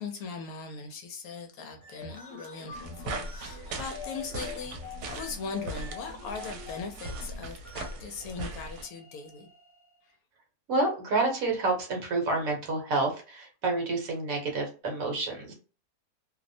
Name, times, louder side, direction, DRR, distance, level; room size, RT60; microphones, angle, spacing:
voice 1, 0.0-9.5, left 4 dB, 70° left, 5 dB, 1.0 m, -39 dB
sound 1, 1.7-10.0, left 5 dB, 20° left, 0.5 m, -46 dB
sound 2, 2.7-8.9, right 2 dB, 85° right, 1.2 m, -39 dB
voice 2, 10.7-15.5, right 3 dB, 65° right, 1 dB, 1.1 m, -29 dB
2.7 x 2.0 x 2.6 m, 0.36 s
omnidirectional pair, 1.7 m